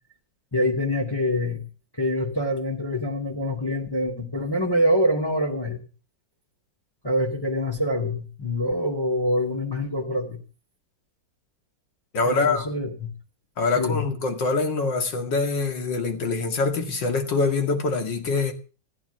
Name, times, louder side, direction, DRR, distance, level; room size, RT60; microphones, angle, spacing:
voice 1, 0.5-1.6 2.0-5.8 7.0-10.4 12.2-13.1 13.8-14.0, left 1 dB, 10° left, 2.6 m, -25 dB
voice 2, 12.1-12.7 13.6-18.5, left 3 dB, 75° left, 2.8 m, -24 dB
14.5 x 11.0 x 6.8 m
omnidirectional pair, 2.0 m